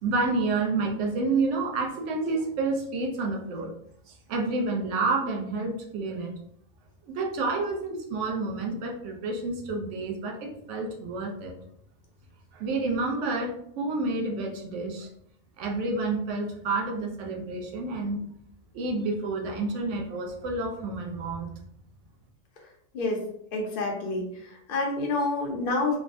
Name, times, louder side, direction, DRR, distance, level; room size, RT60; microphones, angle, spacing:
voice 1, 0.0-3.7 4.1-6.4 7.1-11.5 12.5-15.1 15.6-18.2 18.7-21.5, right 3 dB, 65° right, 1 dB, 0.8 m, -29 dB
voice 2, 23.5-26.0, left 2 dB, 55° left, 0 dB, 0.6 m, -28 dB
3.3 x 2.0 x 2.5 m, 0.73 s
omnidirectional pair, 1.6 m